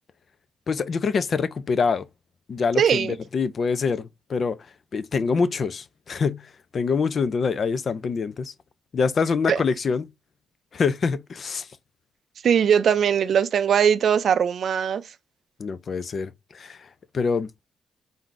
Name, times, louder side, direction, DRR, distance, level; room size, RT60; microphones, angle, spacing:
voice 1, 0.7-2.1 2.5-4.6 4.9-8.5 8.9-10.1 10.7-11.7 15.6-16.9 17.1-17.5, left 5 dB, 45° left, 0.4 m, -25 dB
voice 2, 2.8-3.1 9.5-9.6 12.4-15.0, right 8 dB, 60° right, 0.4 m, -20 dB
3.7 x 2.6 x 4.6 m
cardioid pair, 90°, 0 cm